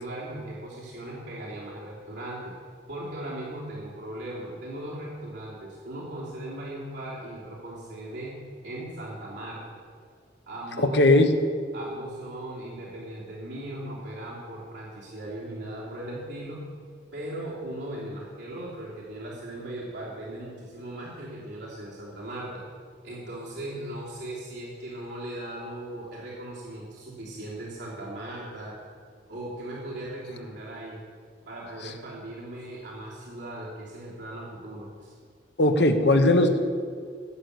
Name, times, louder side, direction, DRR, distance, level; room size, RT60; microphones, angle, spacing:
voice 1, 0.0-2.5 2.9-9.6 10.5-11.0 11.7-16.6 17.1-22.6 23.0-28.8 29.3-31.0 31.4-35.1, right 1 dB, 70° right, -7 dB, 3.1 m, -38 dB
voice 2, 10.8-11.4 35.6-36.6, left 2 dB, 65° left, 6 dB, 1.2 m, -19 dB
16.0 x 8.4 x 6.6 m, 2.1 s
head